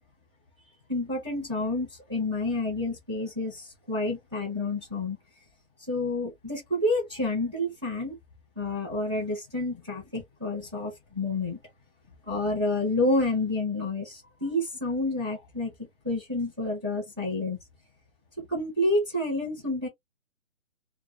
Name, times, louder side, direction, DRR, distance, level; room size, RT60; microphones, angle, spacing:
voice 1, 0.9-5.2 5.9-8.2 8.6-11.6 12.3-15.7 16.0-17.6 18.5-19.9, left 2 dB, 20° right, 0.8 m, -29 dB
2.2 x 2.0 x 3.4 m
hypercardioid pair, 180°, 42 cm